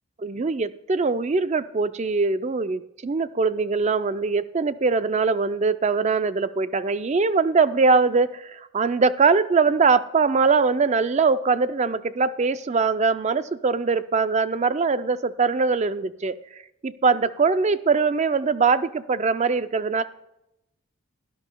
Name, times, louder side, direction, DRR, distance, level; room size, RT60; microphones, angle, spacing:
voice 1, 0.2-16.4 16.8-20.0, right 4 dB, 30° right, 13 dB, 0.4 m, -22 dB
17.5 x 11.0 x 2.2 m, 0.88 s
head